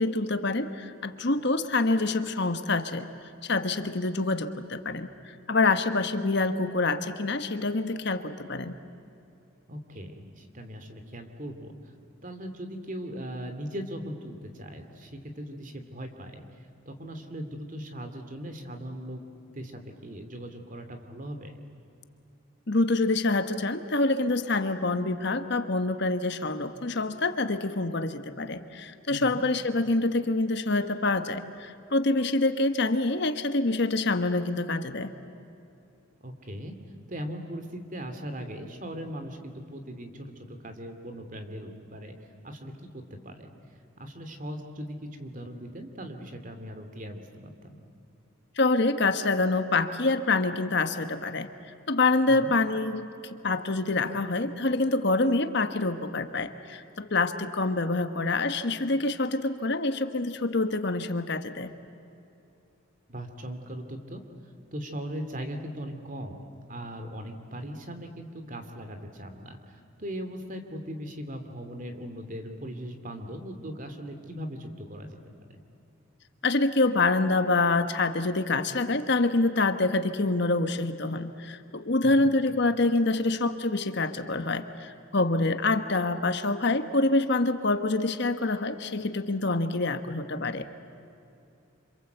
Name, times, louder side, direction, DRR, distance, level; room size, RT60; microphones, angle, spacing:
voice 1, 0.0-3.1 3.4-5.1 5.5-8.7 22.7-35.1 48.6-51.5 51.9-61.7 76.4-90.7, left 2 dB, 55° left, 9 dB, 1.2 m, -26 dB
voice 2, 9.7-11.7 12.2-16.4 16.9-19.2 19.5-21.6 29.1-29.4 36.2-36.7 37.1-42.2 42.4-43.5 44.0-47.8 52.3-52.5 63.1-64.2 64.7-69.6 70.0-75.4 82.0-82.3, equal, 40° right, 7 dB, 2.6 m, -39 dB
28.0 x 26.0 x 8.1 m, 2.7 s
head